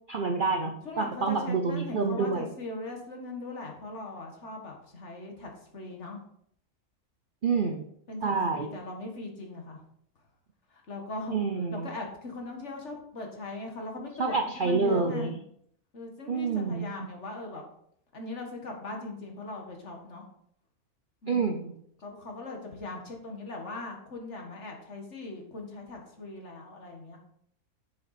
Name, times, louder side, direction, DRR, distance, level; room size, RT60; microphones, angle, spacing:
voice 1, 0.1-2.5 7.4-7.8 8.2-8.7 11.3-11.9 14.2-15.3 16.3-16.9 21.3-21.7, right 4 dB, 50° right, 4 dB, 0.6 m, -28 dB
voice 2, 0.9-6.2 8.1-9.8 10.7-11.4 11.7-15.3 15.9-17.6 18.1-20.3 21.2-21.6 22.0-27.2, left 2 dB, 50° left, 2 dB, 1.9 m, -40 dB
7.5 x 6.9 x 4.2 m, 0.69 s
omnidirectional pair, 1.6 m